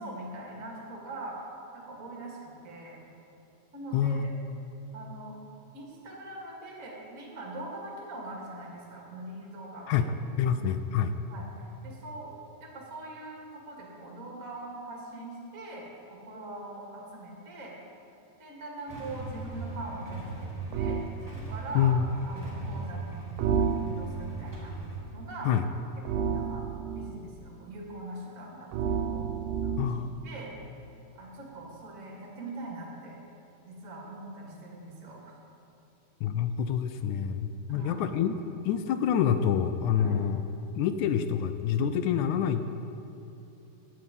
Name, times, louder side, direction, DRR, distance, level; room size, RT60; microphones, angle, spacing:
voice 1, 0.0-1.4 1.7-3.0 3.7-4.3 4.9-5.4 5.7-10.1 10.4-10.6 11.3-12.3 12.6-17.7 18.4-21.0 21.4-21.9 22.3-23.3 23.6-24.8 25.1-25.5 26.0-26.6 26.9-29.3 29.6-30.5 31.1-33.2 33.6-35.4 37.7-38.1 40.0-40.2, right 2 dB, 30° right, -2 dB, 2.3 m, -42 dB
voice 2, 3.9-4.7 9.9-10.1 10.4-11.2 21.8-22.1 25.5-25.6 29.8-30.1 36.2-38.4 38.6-40.4 40.8-42.7, left 8 dB, 75° left, 9 dB, 1.9 m, -27 dB
Motorcycle / Engine starting / Idling, 18.9-25.0, right 3 dB, 5° right, 2.3 m, -39 dB
sound 1, 20.7-21.2 23.4-24.3 26.1-27.2 28.7-30.1, right 6 dB, 85° right, 2.3 m, -30 dB
16.5 x 9.8 x 5.4 m, 3.0 s
omnidirectional pair, 3.8 m